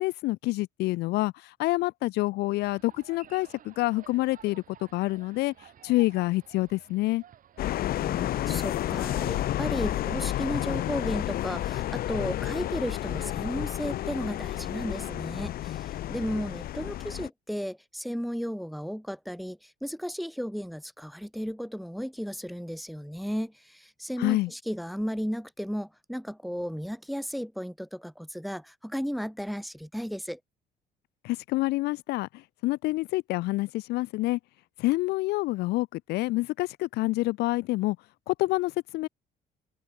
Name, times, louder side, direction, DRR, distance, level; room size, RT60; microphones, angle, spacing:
voice 1, 0.0-4.6 4.9-5.5 5.8-7.2 24.2-24.5 31.2-32.3 32.6-34.4 34.8-38.0 38.3-39.1, left 19 dB, 80° left, 0.4 m, -27 dB
sound 1, 2.6-9.6, right 10 dB, 55° right, 4.2 m, -54 dB
sound 2, 7.6-17.3, left 13 dB, 60° left, 0.9 m, -31 dB
voice 2, 8.0-30.4, equal, ahead, 1.0 m, -34 dB
open air
cardioid pair, 110°, 17 cm